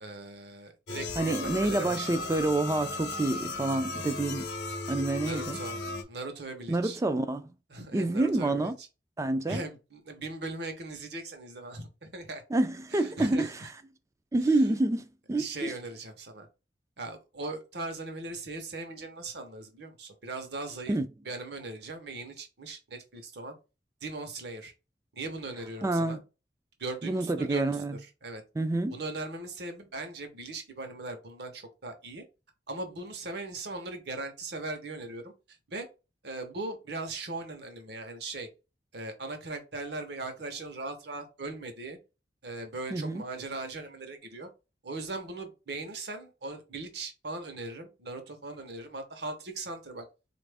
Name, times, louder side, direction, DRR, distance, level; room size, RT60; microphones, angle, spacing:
voice 1, 0.0-2.2 5.2-5.8 6.1-7.0 7.7-8.7 9.5-12.4 12.9-13.7 14.4-14.8 15.4-16.5 17.0-21.0 21.2-23.6 24.0-24.7 25.1-26.2 26.8-28.4 28.9-32.2 32.7-35.3 35.7-35.9 36.2-38.5 38.9-42.0 42.4-44.5 44.8-50.1, right 2 dB, 65° right, 0.9 m, -39 dB
sound 1, 0.9-6.0, left 3 dB, 65° left, 0.8 m, -36 dB
voice 2, 1.2-4.5 4.9-5.6 6.7-7.5 7.9-8.7 9.2-9.6 12.5-13.5 14.3-15.7 20.9-21.1 25.8-26.2 27.0-28.0 28.6-29.0 42.9-43.2, right 2 dB, 15° right, 0.3 m, -28 dB
4.0 x 2.5 x 3.4 m
head